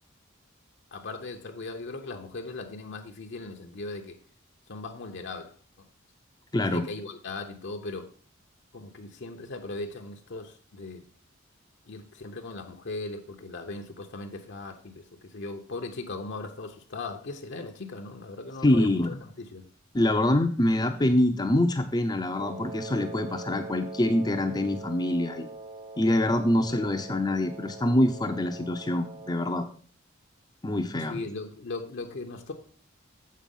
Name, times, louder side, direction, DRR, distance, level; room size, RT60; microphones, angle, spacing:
voice 1, 0.9-4.2 4.7-5.5 6.7-8.1 8.7-11.0 11.9-19.6 26.5-26.8 31.1-32.5, left 3 dB, 60° left, 4 dB, 0.8 m, -38 dB
voice 2, 6.5-6.9 18.6-19.2 19.9-25.5 26.0-29.7 30.6-31.2, left 1 dB, 20° left, 4 dB, 0.5 m, -25 dB
Wind instrument woodwind instrument, 22.4-29.7, right 2 dB, 40° right, 0.5 m, -42 dB
7.5 x 4.5 x 5.3 m, 0.43 s
head